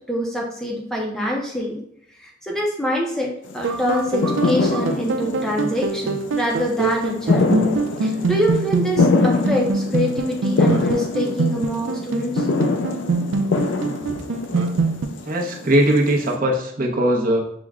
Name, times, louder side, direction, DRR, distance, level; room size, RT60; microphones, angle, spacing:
voice 1, 0.0-1.8 2.2-3.3 3.5-7.6 8.0-12.5 14.1-14.2, equal, 5° left, -1 dB, 0.5 m, -25 dB
sound 1, 3.5-16.3, left 3 dB, 70° left, 0.4 m, -24 dB
sound 2, 3.6-15.1, right 4 dB, 90° right, 0.4 m, -24 dB
voice 2, 15.2-17.4, right 1 dB, 45° right, -1 dB, 0.7 m, -19 dB
5.9 x 2.1 x 3.5 m, 0.70 s
head